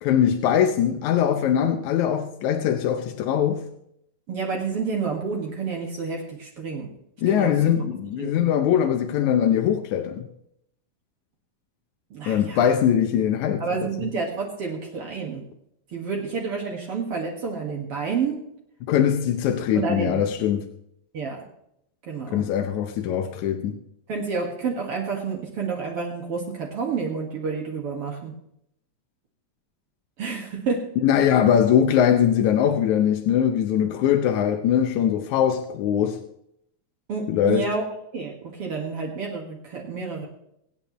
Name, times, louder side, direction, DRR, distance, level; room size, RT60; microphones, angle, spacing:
voice 1, 0.0-3.7 7.2-10.3 12.3-13.9 18.8-20.7 22.3-23.8 31.0-36.2 37.3-37.7, left 9 dB, 80° left, 2.2 m, -21 dB
voice 2, 4.3-6.9 7.3-7.6 8.2-8.5 12.1-12.7 13.6-15.4 15.9-18.4 19.7-20.1 21.1-21.4 22.1-22.4 24.1-28.3 30.2-30.8 37.1-37.8 38.1-40.3, right 5 dB, 55° right, 2.5 m, -29 dB
24.5 x 9.0 x 3.1 m
omnidirectional pair, 3.4 m